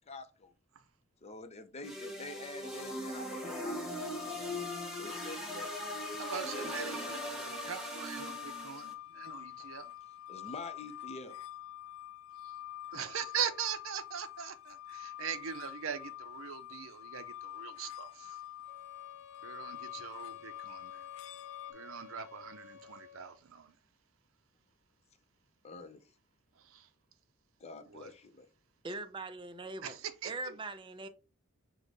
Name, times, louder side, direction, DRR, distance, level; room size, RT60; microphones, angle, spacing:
voice 1, 0.1-0.5 1.2-5.8 10.3-11.4 25.6-26.0 27.6-28.5, left 3 dB, 30° left, 0.6 m, -47 dB
sound 1, 1.8-8.9, equal, ahead, 1.0 m, -40 dB
sound 2, 4.1-21.7, left 13 dB, 80° left, 0.3 m, -47 dB
voice 2, 6.2-9.9 12.9-18.4 19.4-21.1 21.7-23.7 26.6-26.9 27.9-28.1 29.8-30.5, right 7 dB, 70° right, 0.5 m, -41 dB
sound 3, 18.6-23.4, left 7 dB, 55° left, 0.9 m, -54 dB
voice 3, 28.8-30.0 30.2-31.1, right 2 dB, 25° right, 0.4 m, -41 dB
4.8 x 2.2 x 3.9 m
head